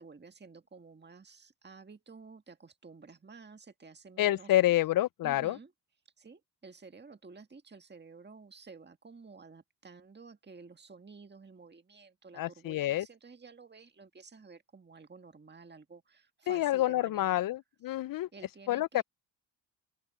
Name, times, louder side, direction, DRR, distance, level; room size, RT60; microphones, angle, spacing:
voice 1, 0.0-4.8 5.2-5.7 6.2-17.4 18.3-19.0, right 4 dB, 20° right, 1.7 m, -52 dB
voice 2, 4.2-5.6 12.4-13.1 16.5-18.3 18.7-19.0, left 14 dB, 50° left, 0.4 m, -28 dB
open air
supercardioid pair, 65°, 46 cm